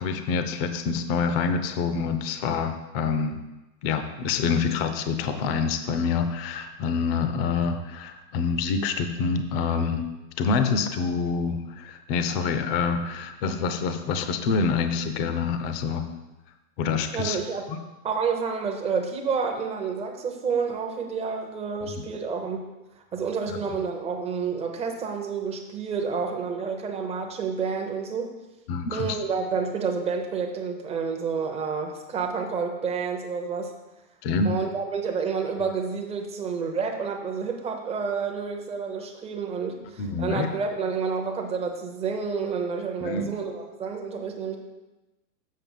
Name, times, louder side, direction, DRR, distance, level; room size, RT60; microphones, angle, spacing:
voice 1, 0.0-3.4 3.8-10.1 10.4-16.1 16.8-17.4 21.8-21.9 23.5-23.6 28.7-29.2 34.2-34.5 40.0-40.5 43.0-43.3, left 5 dB, 35° left, 9 dB, 0.6 m, -26 dB
voice 2, 17.1-17.7 18.0-22.6 23.1-28.3 28.9-33.7 34.4-44.6, right 5 dB, 15° right, 3 dB, 0.7 m, -29 dB
7.6 x 5.4 x 5.4 m, 1.0 s
hypercardioid pair, 130°, 50 cm